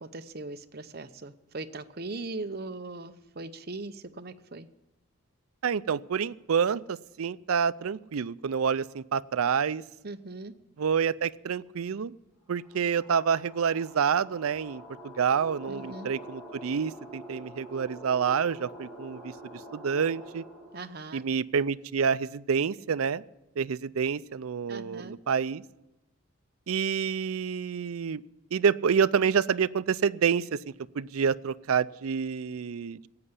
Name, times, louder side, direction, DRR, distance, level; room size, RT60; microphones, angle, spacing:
voice 1, 0.0-4.7 10.0-10.5 15.7-16.1 20.7-21.2 24.7-25.2, right 2 dB, 45° right, 9 dB, 0.8 m, -39 dB
voice 2, 5.6-9.8 10.8-12.1 12.5-19.3 19.7-20.4 21.1-23.2 23.6-25.6 26.7-28.2 28.5-30.6 30.9-33.1, right 6 dB, 80° right, 16 dB, 0.5 m, -28 dB
sound 1, 12.5-20.9, equal, ahead, 3.0 m, -46 dB
15.5 x 8.8 x 9.7 m, 0.95 s
head